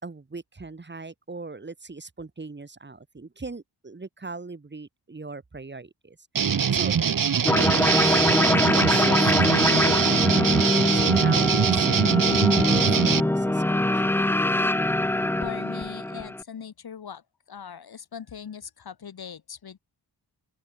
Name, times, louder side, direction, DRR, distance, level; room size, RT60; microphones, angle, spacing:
voice 1, 0.0-6.2 6.7-6.9 7.5-8.1 8.4-10.5 10.9-14.1, right 3 dB, 25° right, 3.7 m, -39 dB
sound 1, 6.4-13.2, right 7 dB, 55° right, 1.9 m, -23 dB
sound 2, 7.4-16.4, left 1 dB, 5° left, 0.4 m, -23 dB
voice 2, 15.4-17.2 17.5-19.8, left 7 dB, 70° left, 4.0 m, -40 dB
open air
wide cardioid pair, 150°, 39 cm